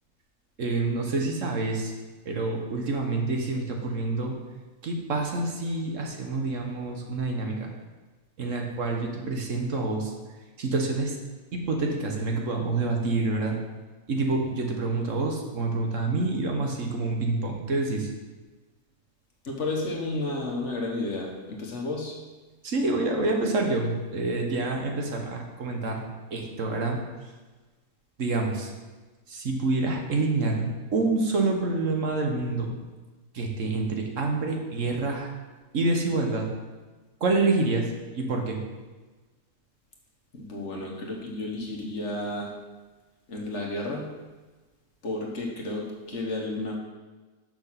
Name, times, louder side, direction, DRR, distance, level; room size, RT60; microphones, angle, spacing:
voice 1, 0.6-1.9 2.2-4.4 4.8-7.7 8.4-10.1 10.6-11.2 11.5-13.6 14.1-18.1 22.6-27.0 28.2-28.7 29.3-30.6 30.9-32.7 33.3-35.3 35.7-36.5 37.2-37.9 38.1-38.6, right 3 dB, 65° right, 2 dB, 1.4 m, -27 dB
voice 2, 19.4-22.2 40.3-42.5 43.3-44.1 45.0-46.8, left 2 dB, 55° left, 0 dB, 1.5 m, -32 dB
6.4 x 6.0 x 5.8 m, 1.3 s
omnidirectional pair, 1.5 m